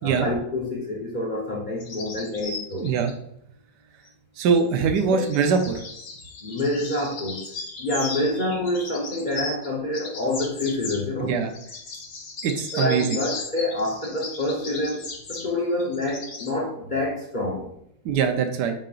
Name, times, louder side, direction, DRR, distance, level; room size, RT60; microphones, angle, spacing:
voice 1, 0.0-2.9 5.1-5.3 6.4-7.4 7.8-11.4 12.7-17.7, left 1 dB, 40° left, -3 dB, 0.7 m, -27 dB
sound 1, 1.8-3.1 4.4-9.7 9.9-11.0 11.5-16.5, left 4 dB, 60° left, 1.8 m, -37 dB
voice 2, 2.7-3.1 4.4-5.8 11.2-11.5 12.4-13.2 18.0-18.7, right 6 dB, 65° right, 6 dB, 1.3 m, -22 dB
7.7 x 5.4 x 2.5 m, 0.74 s
omnidirectional pair, 2.1 m